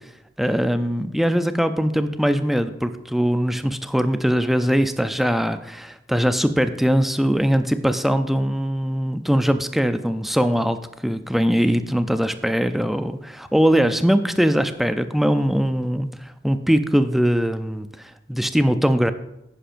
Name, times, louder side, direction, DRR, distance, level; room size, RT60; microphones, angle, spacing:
voice 1, 0.4-10.8 11.0-19.1, equal, ahead, 9 dB, 0.4 m, -21 dB
10.0 x 10.0 x 2.5 m, 0.86 s
head